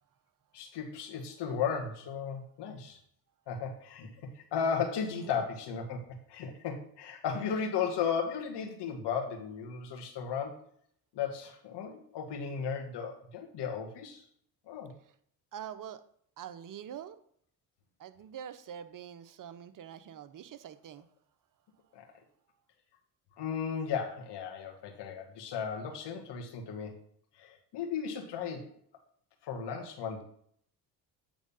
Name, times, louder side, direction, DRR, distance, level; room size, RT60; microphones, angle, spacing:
voice 1, 0.5-3.0 3.5-6.0 6.3-10.6 11.1-14.2 14.7-14.9 21.9-22.1 23.4-27.0 27.4-28.7 29.4-30.2, left 6 dB, 60° left, 3 dB, 1.9 m, -35 dB
voice 2, 15.5-16.0 16.4-17.2 18.0-21.1, right 9 dB, 45° right, 11 dB, 0.9 m, -45 dB
8.9 x 3.7 x 5.6 m, 0.64 s
hypercardioid pair, 60°, 46 cm